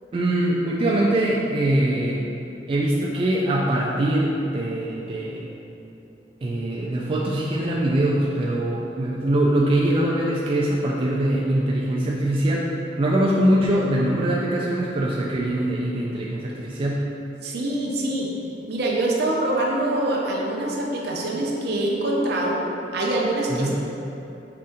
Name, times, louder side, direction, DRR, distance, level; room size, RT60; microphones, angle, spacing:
voice 1, 0.1-2.3 2.7-5.5 6.4-17.1 23.5-23.7, right 1 dB, 30° right, -4 dB, 0.3 m, -23 dB
voice 2, 17.4-18.3 18.7-22.6 22.9-23.7, right 1 dB, 65° right, -2 dB, 0.7 m, -24 dB
5.6 x 2.6 x 3.7 m, 2.9 s
head